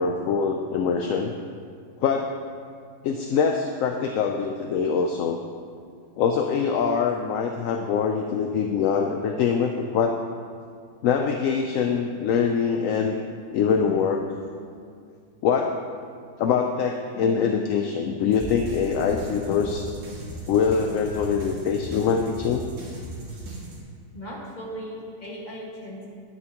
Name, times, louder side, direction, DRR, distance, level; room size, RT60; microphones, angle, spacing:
voice 1, 0.0-1.3 2.0-2.3 3.0-5.4 6.2-10.2 11.0-13.2 13.5-14.3 15.4-15.8 16.4-19.9 20.5-22.6, left 6 dB, 65° left, 4 dB, 0.8 m, -24 dB
sound 1, 18.3-23.8, right 1 dB, 70° right, 2.1 m, -37 dB
voice 2, 24.1-26.1, equal, 25° left, -4 dB, 1.9 m, -37 dB
11.0 x 10.5 x 3.0 m, 2.2 s
omnidirectional pair, 1.7 m